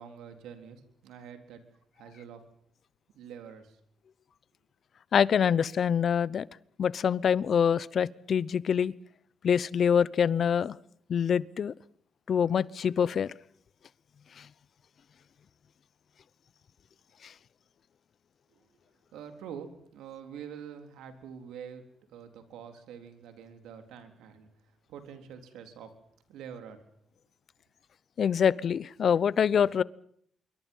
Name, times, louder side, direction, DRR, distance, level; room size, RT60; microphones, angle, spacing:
voice 1, 0.0-1.6 2.0-2.4 3.1-3.8 18.6-18.7 19.1-21.8 22.1-24.5 24.9-25.9 26.3-26.8, right 8 dB, 85° right, 7 dB, 3.8 m, -45 dB
voice 2, 5.1-6.5 6.8-8.9 9.4-10.7 11.1-11.7 12.3-13.3 17.2-17.3 28.2-29.8, left 7 dB, 55° left, 20 dB, 0.8 m, -25 dB
26.0 x 23.5 x 5.6 m, 0.65 s
cardioid pair, 90°, 0 cm